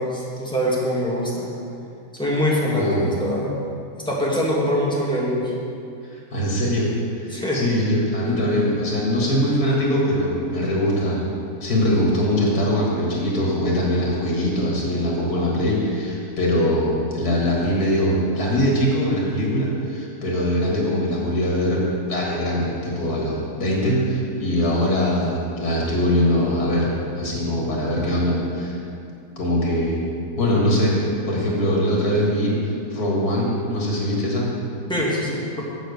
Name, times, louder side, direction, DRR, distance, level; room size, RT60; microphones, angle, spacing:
voice 1, 0.0-1.5 2.2-3.6 4.1-5.5 7.3-7.6 34.9-35.6, equal, 5° left, -5 dB, 1.8 m, -23 dB
voice 2, 2.7-3.1 6.3-6.9 7.2-11.3 11.6-21.8 22.1-26.9 27.2-28.8 29.4-30.1 30.4-30.9 31.2-32.6 32.9-34.5, equal, 85° left, -3 dB, 2.5 m, -22 dB
7.9 x 7.5 x 6.6 m, 2.5 s
omnidirectional pair, 1.6 m